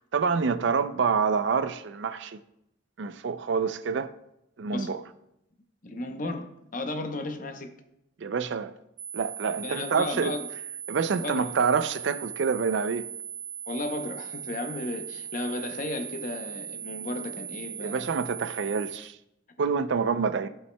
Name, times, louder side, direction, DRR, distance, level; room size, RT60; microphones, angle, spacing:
voice 1, 0.0-2.4 3.0-4.1 4.6-5.0 8.2-8.7 9.1-10.3 10.9-13.1 17.8-19.2 19.6-20.5, right 5 dB, 60° right, 0.4 m, -27 dB
voice 2, 5.8-7.7 9.6-10.5 11.2-11.5 13.7-18.1 19.6-19.7, left 2 dB, 40° left, 0.7 m, -34 dB
sound 1, 9.0-19.0, right 8 dB, 35° right, 2.1 m, -39 dB
15.5 x 5.5 x 2.2 m
head